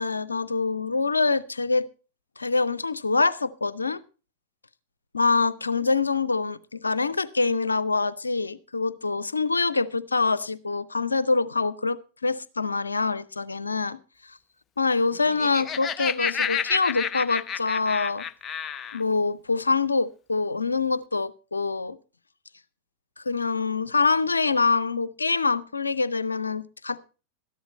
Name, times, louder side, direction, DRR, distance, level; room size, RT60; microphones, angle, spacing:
voice 1, 0.0-1.9 2.4-4.0 5.1-14.4 14.8-18.3 18.9-22.0 23.2-27.0, left 4 dB, 80° left, 0.6 m, -25 dB
Laughter, 15.2-19.0, left 7 dB, 25° left, 0.6 m, -30 dB
13.5 x 11.0 x 4.2 m
figure-of-eight pair, 90°, 0 cm